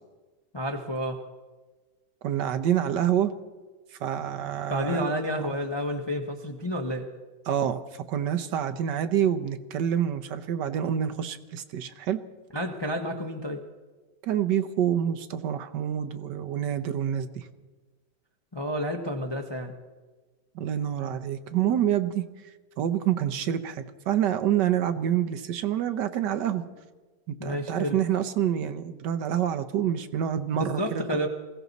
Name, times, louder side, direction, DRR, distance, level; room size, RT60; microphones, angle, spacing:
voice 1, 0.5-1.2 4.7-7.1 12.5-13.6 18.5-19.7 27.4-28.0 30.5-31.3, equal, 25° left, 4 dB, 0.6 m, -30 dB
voice 2, 2.2-3.3 4.0-5.1 7.5-12.2 14.2-17.5 20.5-22.2 22.8-26.6 27.4-31.3, right 10 dB, 75° right, 9 dB, 1.4 m, -27 dB
20.5 x 16.5 x 4.1 m, 1.3 s
omnidirectional pair, 1.9 m